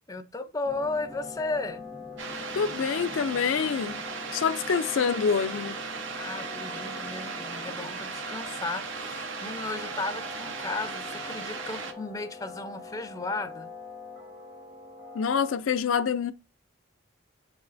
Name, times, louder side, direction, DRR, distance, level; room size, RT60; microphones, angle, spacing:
voice 1, 0.1-1.8 6.1-13.7, left 3 dB, 15° left, 0.5 m, -34 dB
sound 1, 0.6-15.6, left 3 dB, 25° right, 0.9 m, -43 dB
sound 2, 2.2-11.9, right 5 dB, 65° right, 0.8 m, -37 dB
voice 2, 2.5-4.0 4.3-5.8 15.1-16.3, left 6 dB, 75° left, 0.4 m, -26 dB
7.4 x 5.5 x 2.5 m
head